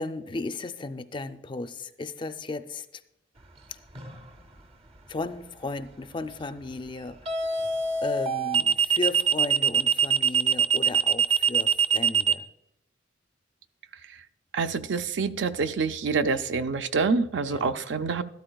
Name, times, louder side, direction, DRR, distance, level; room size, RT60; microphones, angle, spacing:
voice 1, 0.0-3.0 3.7-3.8 5.1-12.5 17.5-17.9, left 3 dB, 25° left, 0.4 m, -35 dB
sound 1, 4.0-4.3 7.3-12.3, right 7 dB, 30° right, 0.7 m, -23 dB
voice 2, 14.5-18.2, right 4 dB, 70° right, 0.5 m, -26 dB
13.0 x 12.5 x 2.3 m
head